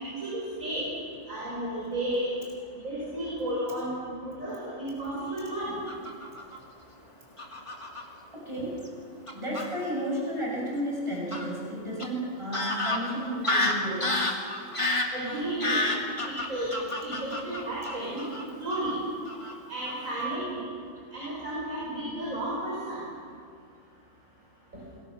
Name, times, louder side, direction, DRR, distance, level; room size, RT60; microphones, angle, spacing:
voice 1, 0.2-0.9 1.3-2.3 2.8-5.8 15.1-15.8 16.2-16.7 17.0-18.2 18.6-18.9 19.7-20.7 21.1-23.0, right 1 dB, 85° right, -6 dB, 6.7 m, -33 dB
Fowl / Bird vocalization bird call bird song, 5.9-6.6 7.4-8.0 8.8-8.9 9.3-9.7 11.3-11.4 12.0-12.1 12.5-18.4 18.7-19.0 19.3-19.5 19.9-20.1, left 1 dB, 25° left, 2.5 m, -30 dB
voice 2, 8.3-8.9 9.3-14.3 14.7-14.8 15.7-16.0, equal, 20° right, -4 dB, 6.6 m, -33 dB
27.5 x 22.5 x 6.5 m, 2.3 s
omnidirectional pair, 1.4 m